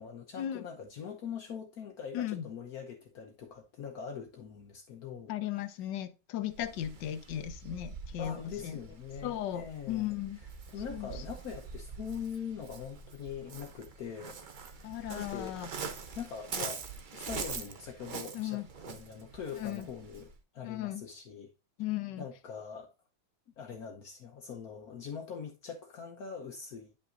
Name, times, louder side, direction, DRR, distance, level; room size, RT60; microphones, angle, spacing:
voice 1, 0.0-5.3 8.2-10.1 10.7-14.4 15.1-15.6 16.1-16.8 17.1-21.5 22.2-22.9 23.6-27.0, left 7 dB, 65° left, 1.3 m, -42 dB
voice 2, 2.1-2.4 5.3-8.8 9.2-10.4 10.9-11.1 14.8-15.7 18.3-18.7 19.6-19.9 20.6-21.0 21.8-22.3, left 12 dB, 85° left, 1.4 m, -36 dB
Waves surf, 6.5-20.4, right 5 dB, 65° right, 0.4 m, -44 dB
9.8 x 5.4 x 2.5 m
omnidirectional pair, 1.9 m